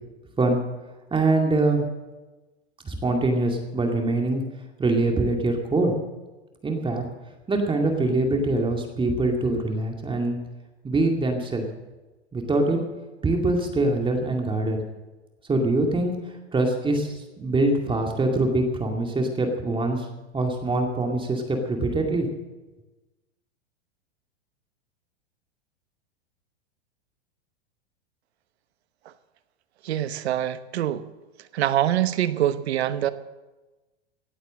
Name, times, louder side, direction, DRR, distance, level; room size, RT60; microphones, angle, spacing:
voice 1, 1.1-1.9 2.8-4.4 4.8-5.9 6.6-7.0 7.5-10.4 10.8-11.7 12.3-12.8 13.2-14.8 15.5-20.1 20.3-22.3, right 2 dB, 15° right, 2 dB, 2.2 m, -24 dB
voice 2, 29.8-31.0 31.5-33.1, right 12 dB, 70° right, 14 dB, 1.1 m, -24 dB
17.0 x 8.8 x 7.5 m, 1.1 s
hypercardioid pair, 105°, 33 cm